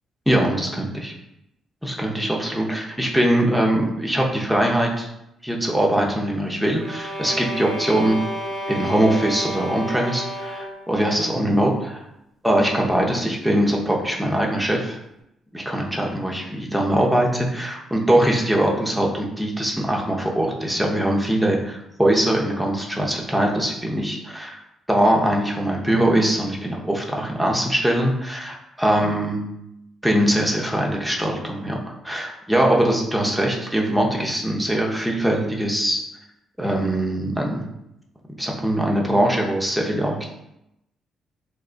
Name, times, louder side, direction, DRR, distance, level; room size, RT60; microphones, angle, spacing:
voice 1, 0.3-1.1 1.8-5.1 5.4-8.2 8.7-12.0 12.4-15.0 15.5-16.4 16.7-24.6 24.9-29.4 30.0-31.8 32.0-36.0 36.6-37.7 38.4-40.3, right 1 dB, ahead, -1 dB, 0.6 m, -22 dB
sound 1, 6.8-10.9, equal, 35° right, 0.7 m, -31 dB
2.9 x 2.2 x 3.8 m, 0.85 s
cardioid pair, 90°, 0 cm